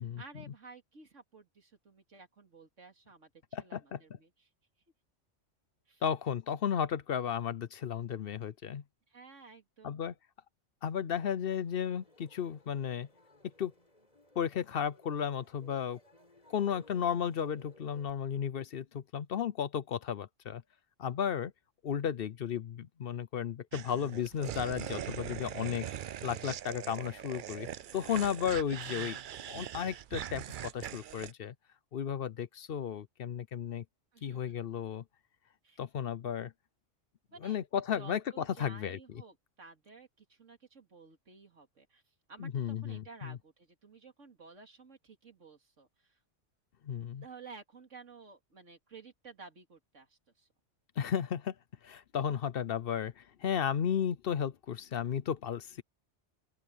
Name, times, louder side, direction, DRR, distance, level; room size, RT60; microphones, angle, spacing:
voice 1, 0.0-4.5 5.9-6.0 9.1-10.0 27.6-28.1 34.1-34.7 35.6-35.8 37.3-37.6 37.9-42.0 42.3-46.2 47.2-50.5, right 4 dB, 90° right, 3.0 m, -54 dB
voice 2, 6.0-8.8 9.8-10.1 10.8-13.1 13.6-13.7 14.4-16.0 16.5-20.6 21.0-21.5 21.8-25.9 26.2-27.7 27.9-29.2 29.5-31.5 31.9-33.8 34.2-35.0 35.8-36.5 37.4-39.0 42.4-43.4 46.8-47.2 51.0-51.5 51.8-55.8, left 8 dB, 55° left, 0.8 m, -34 dB
sound 1, 11.4-18.1, left 2 dB, 35° left, 4.3 m, -60 dB
sound 2, 23.7-31.3, right 10 dB, 55° right, 0.6 m, -41 dB
open air
omnidirectional pair, 1.2 m